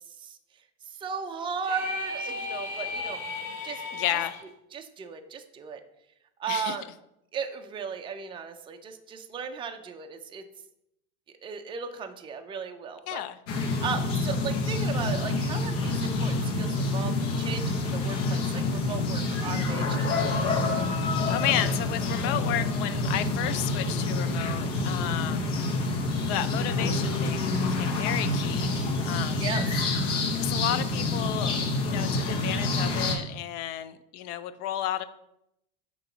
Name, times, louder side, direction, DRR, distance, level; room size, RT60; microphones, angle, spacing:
voice 1, 0.9-3.2 3.6-3.8 4.7-5.8 6.4-6.8 7.3-10.4 11.4-13.2 13.8-20.1 25.4-25.5 29.4-29.7, right 6 dB, 15° right, 5 dB, 0.4 m, -36 dB
sound 1, 1.6-4.4, left 3 dB, 40° left, 2.2 m, -35 dB
voice 2, 3.9-4.3 6.5-6.8 13.1-13.4 20.8-20.9 21.3-25.5 26.3-28.7 29.0-29.4 30.3-35.0, left 12 dB, 60° left, 13 dB, 0.6 m, -32 dB
sound 2, 13.5-33.1, left 2 dB, 80° left, 1.4 m, -27 dB
6.8 x 3.0 x 5.7 m, 0.81 s
supercardioid pair, 125°, 36 cm